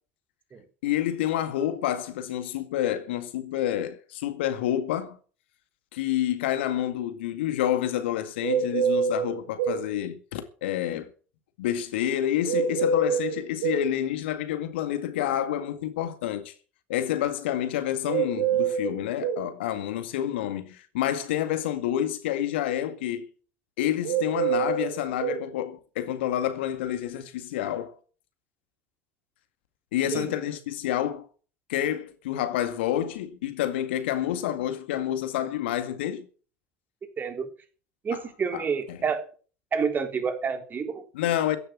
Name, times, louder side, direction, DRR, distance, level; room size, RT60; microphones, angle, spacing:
voice 1, 0.8-5.2 5.9-11.1 11.6-16.5 16.9-23.3 23.8-27.9 29.9-31.2 31.7-36.3 38.5-38.6 38.9-39.0 41.1-41.6, left 11 dB, 65° left, 2.0 m, -28 dB
sound 1, 8.4-9.8 12.5-13.9 18.1-19.5 24.0-25.4, right 6 dB, 60° right, 1.9 m, -26 dB
voice 2, 37.2-37.5 38.0-39.2 39.7-41.0, right 6 dB, 30° right, 3.7 m, -28 dB
15.0 x 11.0 x 6.1 m
figure-of-eight pair, 70°, 6 cm